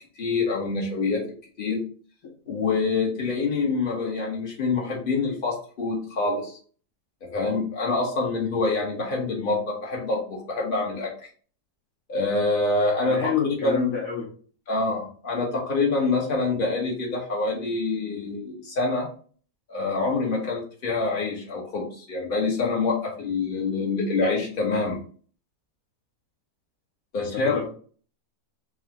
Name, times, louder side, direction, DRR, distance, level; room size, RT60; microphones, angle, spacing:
voice 1, 0.2-1.2 1.6-1.8 2.5-6.6 7.2-11.1 12.1-13.3 13.6-13.9 14.7-19.1 19.7-25.0 27.1-27.6, left 3 dB, 35° left, -2 dB, 1.3 m, -26 dB
voice 2, 13.1-14.3 27.3-27.6, left 7 dB, 60° left, -3 dB, 1.2 m, -28 dB
4.8 x 2.4 x 4.1 m, 0.44 s
omnidirectional pair, 1.8 m